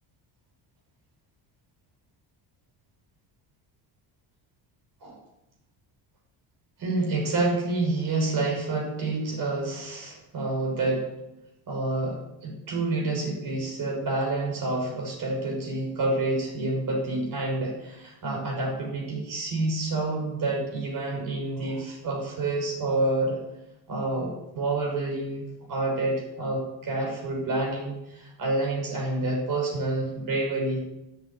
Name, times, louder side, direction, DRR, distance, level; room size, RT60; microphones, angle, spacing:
voice 1, 6.8-11.1 11.7-23.4 23.9-25.4 25.7-30.8, right 2 dB, 50° right, -1 dB, 6.2 m, -28 dB
10.5 x 7.9 x 9.5 m, 0.91 s
cardioid pair, 130°, 42 cm